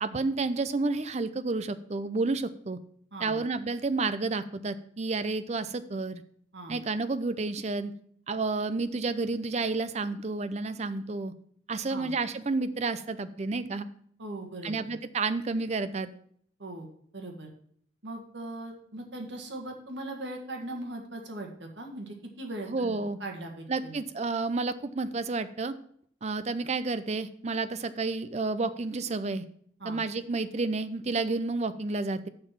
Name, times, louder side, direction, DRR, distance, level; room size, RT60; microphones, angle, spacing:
voice 1, 0.0-2.8 3.2-6.2 6.7-7.9 8.3-11.3 11.7-13.9 14.6-16.1 22.7-23.2 23.7-25.7 26.2-29.4 29.8-32.3, right 3 dB, 35° right, 11 dB, 0.5 m, -30 dB
voice 2, 14.2-14.9 16.6-17.5 18.0-23.9 29.8-30.0, right 1 dB, 70° right, 2 dB, 1.7 m, -40 dB
6.5 x 5.9 x 7.0 m, 0.63 s
head